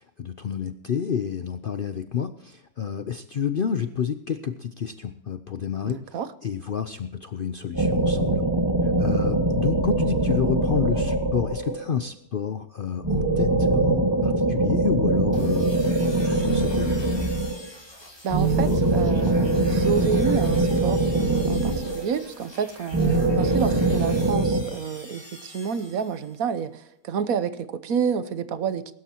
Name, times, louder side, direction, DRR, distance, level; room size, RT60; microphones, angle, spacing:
voice 1, 0.0-8.4 8.8-15.8 16.2-17.1, left 7 dB, 60° left, 10 dB, 0.6 m, -30 dB
voice 2, 5.8-6.3 18.2-28.9, right 7 dB, 70° right, 13 dB, 1.2 m, -29 dB
sound 1, 7.7-11.9 13.0-17.7 18.3-22.3 22.9-24.6, right 2 dB, 15° right, 1.8 m, -22 dB
sound 2, 15.3-26.5, left 1 dB, 15° left, 2.5 m, -45 dB
22.0 x 12.5 x 2.9 m, 0.79 s
omnidirectional pair, 1.6 m